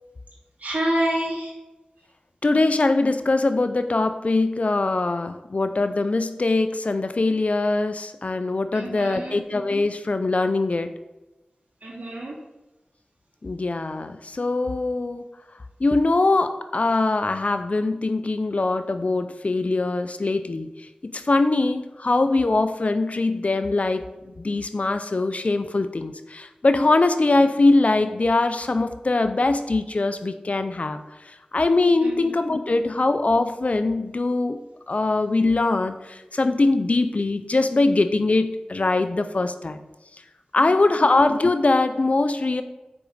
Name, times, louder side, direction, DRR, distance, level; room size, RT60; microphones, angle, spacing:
voice 1, 0.6-1.5 8.7-9.4 11.8-12.4 32.0-32.3 40.6-41.1, right 1 dB, 75° right, -6 dB, 2.8 m, -28 dB
voice 2, 2.4-10.9 13.4-15.3 15.8-20.7 21.0-31.0 31.5-34.6 34.9-39.8 40.5-42.6, left 2 dB, 55° left, 9 dB, 0.5 m, -22 dB
6.0 x 5.1 x 6.6 m, 1.0 s
cardioid pair, 40°, 3 cm